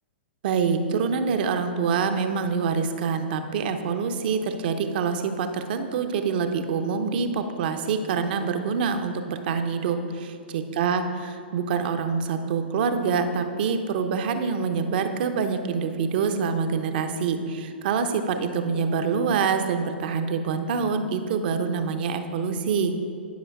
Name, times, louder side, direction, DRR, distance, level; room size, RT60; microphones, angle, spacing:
voice 1, 0.4-22.9, right 5 dB, 55° right, 7 dB, 0.7 m, -26 dB
10.5 x 5.6 x 4.7 m, 2.4 s
hypercardioid pair, 115°, 6 cm